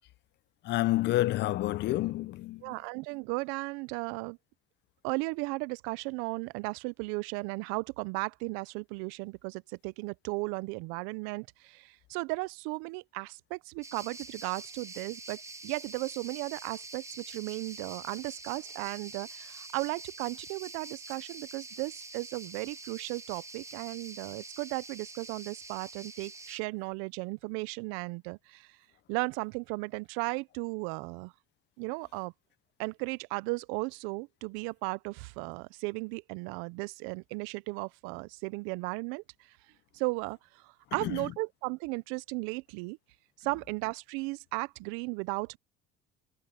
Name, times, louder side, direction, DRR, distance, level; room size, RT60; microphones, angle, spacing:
voice 1, 0.6-2.7 41.0-41.2, left 16 dB, 55° left, 0.7 m, -29 dB
voice 2, 2.6-4.4 5.0-28.7 29.1-31.3 31.8-32.3 32.8-39.2 39.9-40.4 40.6-43.0 43.4-45.6, right 27 dB, 80° right, 0.6 m, -35 dB
sound 1, 13.8-26.6, right 3 dB, 15° right, 1.1 m, -46 dB
supercardioid pair, 90°, 21 cm